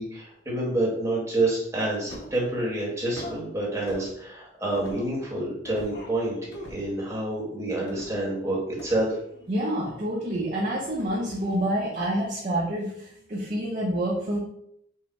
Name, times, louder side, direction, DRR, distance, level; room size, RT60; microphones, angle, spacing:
voice 1, 0.0-9.1, right 2 dB, 15° right, -4 dB, 1.4 m, -28 dB
sound 1, 2.1-2.4 3.2-3.4 3.9-4.1 4.7-5.2 5.6-6.2 6.5-6.9 7.9-8.2 8.8-9.6 10.9-11.3 11.7-11.8, equal, 80° left, 1.0 m, -42 dB
voice 2, 9.5-14.4, right 1 dB, 45° right, -6 dB, 0.9 m, -28 dB
4.8 x 2.3 x 4.2 m, 0.72 s
head